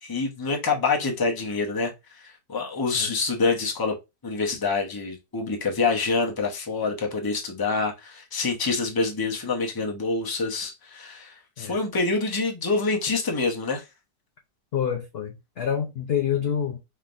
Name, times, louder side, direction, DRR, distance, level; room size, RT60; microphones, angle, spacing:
voice 1, 0.0-4.0 4.2-13.8, left 4 dB, 20° left, 0.5 m, -26 dB
voice 2, 14.7-16.8, left 8 dB, 70° left, 0.5 m, -27 dB
4.3 x 3.7 x 2.5 m
omnidirectional pair, 1.8 m